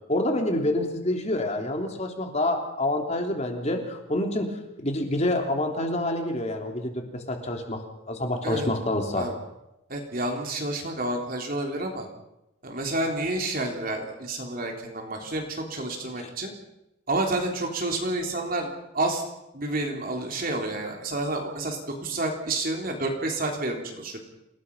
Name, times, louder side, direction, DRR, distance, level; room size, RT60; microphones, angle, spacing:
voice 1, 0.1-4.5 4.8-7.8 8.1-9.3 16.2-16.3, left 1 dB, 30° left, 3 dB, 3.4 m, -27 dB
voice 2, 9.9-12.1 12.6-16.5 17.1-19.2 19.5-24.2, right 2 dB, 45° right, 2 dB, 3.5 m, -29 dB
28.5 x 19.0 x 5.5 m, 0.88 s
head